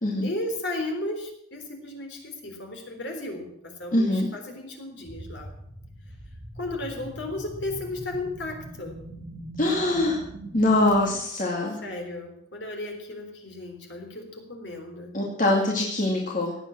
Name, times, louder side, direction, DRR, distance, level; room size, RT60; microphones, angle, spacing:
voice 1, 0.2-5.5 6.6-9.0 11.8-15.1, left 2 dB, 60° left, 3 dB, 3.8 m, -35 dB
voice 2, 3.9-4.3 9.6-10.2 10.5-11.8 15.1-16.6, left 1 dB, 40° left, -2 dB, 2.3 m, -23 dB
sound 1, 5.0-11.2, right 1 dB, 60° right, 3.4 m, -41 dB
17.0 x 9.1 x 7.7 m, 0.75 s
head